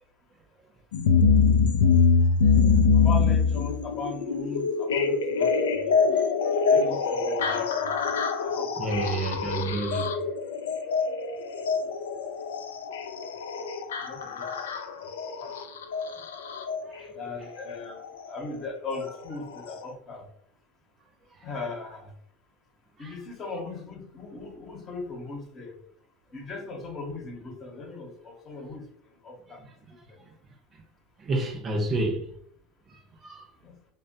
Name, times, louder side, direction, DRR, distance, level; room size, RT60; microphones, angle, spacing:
sound 1, 0.9-16.8 18.0-18.1 18.9-19.0 19.7-19.8, left 5 dB, 80° left, 0.3 m, -24 dB
voice 1, 2.2-2.8 6.1-6.6 8.8-10.2 16.2-16.3 16.8-17.1 21.3-21.5 23.0-23.2 29.5-30.4 30.7-30.8 31.2-32.4 32.9-33.5, right 2 dB, 35° right, 0.7 m, -32 dB
voice 2, 2.9-5.5 5.8-5.9 6.7-8.1 8.4-9.0 14.0-14.6 15.0-15.1 15.4-15.5 17.2-20.3 21.4-22.1 23.0-25.7 26.3-28.9 29.2-29.6 30.1-30.2 33.6-33.7, left 3 dB, 40° left, 0.9 m, -38 dB
3.4 x 2.3 x 2.7 m
hypercardioid pair, 85°, 0 cm